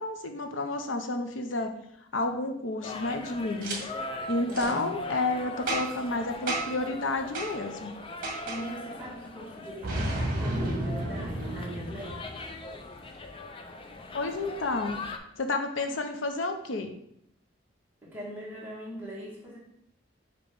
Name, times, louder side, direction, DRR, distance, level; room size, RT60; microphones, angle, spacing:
voice 1, 0.0-1.7 2.1-3.8 4.3-7.9 14.1-15.0 15.4-17.0, left 2 dB, 80° left, 6 dB, 0.7 m, -30 dB
sound 1, 2.8-15.2, left 2 dB, 25° left, 0.5 m, -41 dB
Boom, 3.6-3.8 4.5-4.7 5.7-6.1 6.5-6.8 7.3-7.5 8.2-8.6 9.8-12.5, right 1 dB, 45° right, 1.7 m, -32 dB
voice 2, 4.4-5.0 8.5-12.4 18.0-19.6, equal, 10° right, -6 dB, 2.0 m, -41 dB
6.8 x 3.0 x 5.2 m, 0.74 s
head